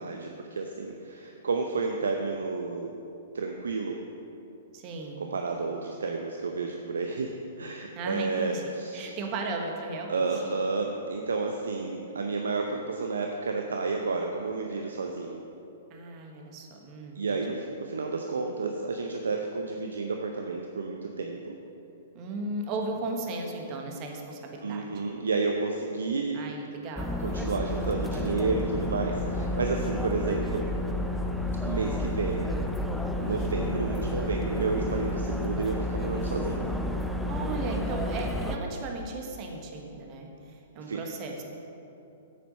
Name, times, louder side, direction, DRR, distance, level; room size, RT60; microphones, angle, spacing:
voice 1, 0.0-2.9 3.3-4.0 5.2-9.1 10.1-15.4 17.1-21.6 24.6-26.4 27.2-30.7 31.6-32.5 33.2-36.7 40.8-41.0, right 4 dB, 75° right, 3 dB, 0.7 m, -31 dB
voice 2, 4.7-5.2 7.9-8.6 8.9-10.2 15.9-17.5 22.1-24.9 26.3-27.3 37.3-41.4, right 2 dB, 35° right, 2 dB, 1.5 m, -36 dB
sound 1, 27.0-38.6, left 1 dB, ahead, 0.6 m, -31 dB
8.6 x 8.5 x 5.4 m, 2.9 s
figure-of-eight pair, 110°, 0 cm